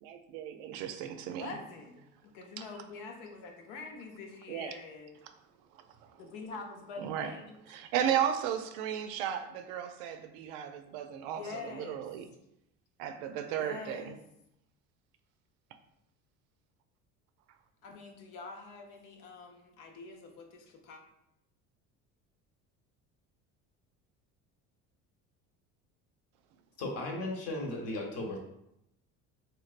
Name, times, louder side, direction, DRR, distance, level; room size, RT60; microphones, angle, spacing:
voice 1, 0.0-1.5 4.5-4.8 7.0-7.3 7.7-11.4 11.7-12.3 13.0-14.1, right 9 dB, 85° right, 0.5 m, -34 dB
voice 2, 1.4-5.2 6.2-7.5 11.3-12.0 13.4-14.2 17.8-21.0, left 4 dB, 85° left, 0.7 m, -45 dB
voice 3, 26.8-28.4, left 2 dB, 50° left, 0.9 m, -36 dB
3.3 x 3.2 x 2.4 m
cardioid pair, 115°, 32 cm